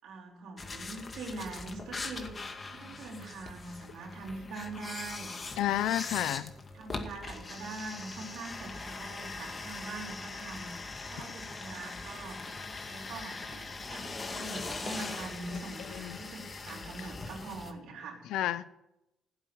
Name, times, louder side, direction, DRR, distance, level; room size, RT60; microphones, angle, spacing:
voice 1, 0.0-5.3 5.8-6.2 6.7-12.5 12.9-18.2, right 3 dB, 80° right, 0 dB, 4.3 m, -43 dB
sound 1, 0.6-17.7, left 3 dB, 35° left, 2.1 m, -41 dB
voice 2, 5.6-6.5 15.5-15.6 15.9-16.2 18.3-18.7, left 13 dB, 90° left, 16 dB, 0.7 m, -31 dB
15.5 x 8.1 x 9.7 m, 0.93 s
cardioid pair, 90°, 0 cm